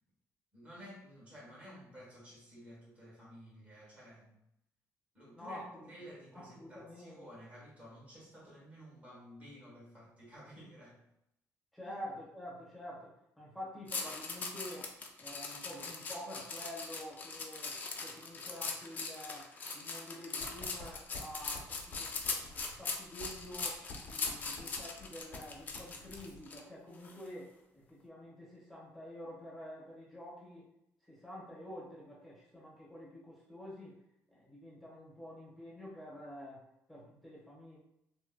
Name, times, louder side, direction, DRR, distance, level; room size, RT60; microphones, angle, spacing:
voice 1, 0.5-4.3 5.1-11.0 11.8-12.0, equal, 20° right, -5 dB, 1.2 m, -53 dB
voice 2, 5.3-5.9 6.3-7.2 11.7-14.9 15.2-30.7 31.0-34.0 34.3-37.8, equal, ahead, -7 dB, 1.0 m, -48 dB
sound 1, 13.9-26.6 27.0-27.3, left 4 dB, 30° left, 0.4 m, -40 dB
Writing, 20.4-26.5, left 2 dB, 50° left, 0.9 m, -52 dB
3.2 x 2.6 x 2.2 m, 0.81 s
cardioid pair, 160°, 6 cm